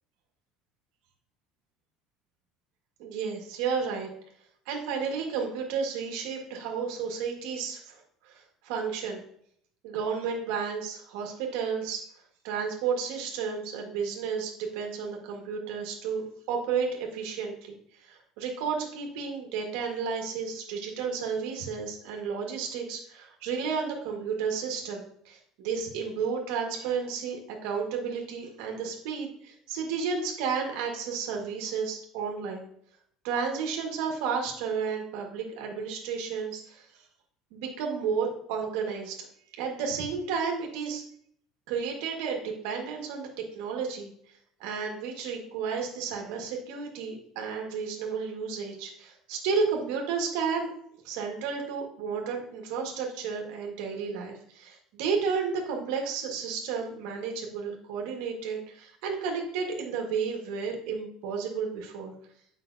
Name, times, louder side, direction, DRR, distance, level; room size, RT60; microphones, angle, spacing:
voice 1, 3.0-4.1 4.6-9.2 9.8-12.0 12.4-32.7 33.2-36.9 37.5-39.1 39.6-41.0 41.7-44.1 44.6-50.7 51.0-62.1, right 6 dB, 80° right, 1 dB, 1.4 m, -32 dB
8.2 x 5.4 x 2.6 m, 0.66 s
cardioid pair, 165°, 0 cm